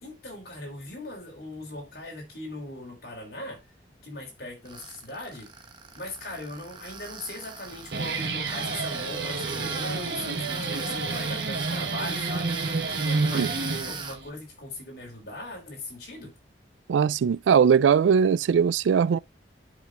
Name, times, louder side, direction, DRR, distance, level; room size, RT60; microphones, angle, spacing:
voice 1, 0.0-3.6 4.0-5.5 6.0-12.6 12.9-16.3, left 1 dB, 55° left, 3.5 m, -39 dB
Tools, 4.7-14.2, right 5 dB, 25° right, 0.9 m, -40 dB
Guitar, 7.7-14.3, right 3 dB, 65° right, 1.1 m, -30 dB
voice 2, 16.9-19.2, right 7 dB, 90° right, 0.3 m, -20 dB
10.5 x 4.9 x 2.4 m
head